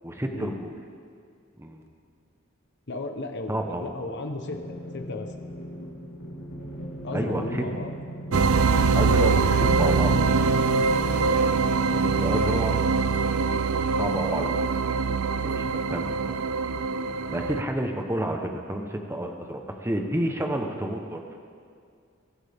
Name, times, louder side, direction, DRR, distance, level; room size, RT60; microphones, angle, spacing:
voice 1, 0.0-0.7 1.6-1.8 3.5-3.9 7.1-7.6 8.9-10.2 12.2-12.8 14.0-14.6 15.4-16.3 17.3-21.2, right 1 dB, 10° right, 3 dB, 1.1 m, -30 dB
voice 2, 2.9-3.5 3.8-5.3 7.0-7.9, left 2 dB, 55° left, 5 dB, 1.1 m, -34 dB
sound 1, 4.5-13.2, equal, 85° left, 3.1 m, -37 dB
sound 2, 8.3-17.6, right 4 dB, 80° right, 0.5 m, -23 dB
23.0 x 12.0 x 3.7 m, 2.3 s
head